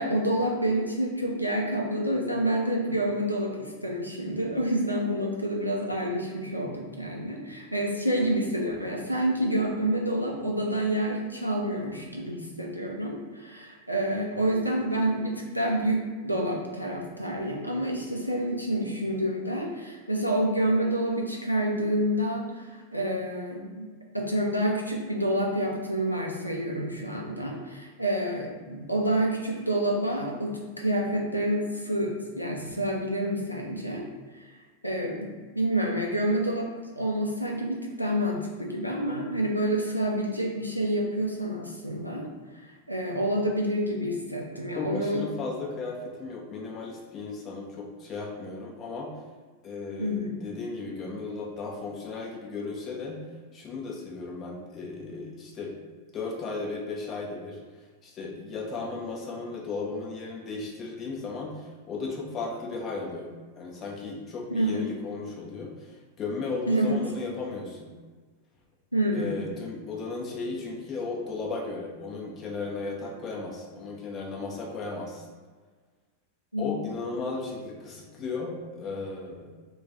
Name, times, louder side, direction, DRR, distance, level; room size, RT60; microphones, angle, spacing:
voice 1, 0.0-23.9 24.1-34.0 34.8-36.7 37.0-42.3 42.7-45.2 50.0-50.4 64.5-64.9 66.7-67.0 68.9-69.4 76.5-76.7, right 1 dB, 90° left, 0 dB, 0.4 m, -28 dB
voice 2, 44.7-49.1 49.6-53.2 53.5-55.7 56.1-57.6 58.0-63.3 63.6-67.9 69.1-75.3 76.6-79.6, left 3 dB, 30° left, -2 dB, 0.5 m, -35 dB
2.3 x 2.3 x 3.9 m, 1.4 s
figure-of-eight pair, 90°, 0 cm